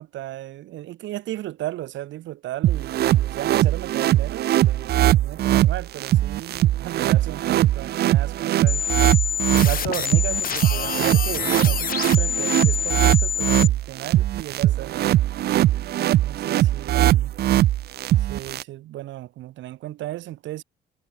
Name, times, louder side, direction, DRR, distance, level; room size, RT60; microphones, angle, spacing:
voice 1, 0.0-8.9 9.4-15.2 16.2-17.3 18.2-20.6, right 14 dB, 85° right, 2.5 m, -35 dB
sound 1, 2.6-18.6, right 13 dB, 60° right, 0.4 m, -21 dB
sound 2, 8.7-13.7, left 9 dB, 50° left, 0.9 m, -27 dB
cardioid pair, 90°, 19 cm